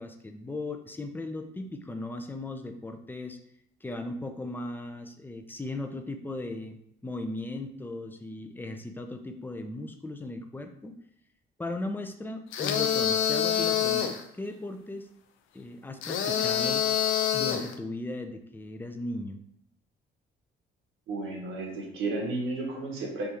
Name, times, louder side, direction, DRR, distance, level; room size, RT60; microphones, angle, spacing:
voice 1, 0.0-3.4 3.8-10.9 11.6-15.1 15.5-16.8 17.3-19.4, left 2 dB, 10° left, 6 dB, 0.5 m, -37 dB
sound 1, 12.5-14.2 16.0-17.7, left 9 dB, 85° left, 0.5 m, -26 dB
voice 2, 21.1-23.4, right 2 dB, 80° right, -1 dB, 1.4 m, -33 dB
3.5 x 2.7 x 4.7 m, 0.74 s
cardioid pair, 90°, 20 cm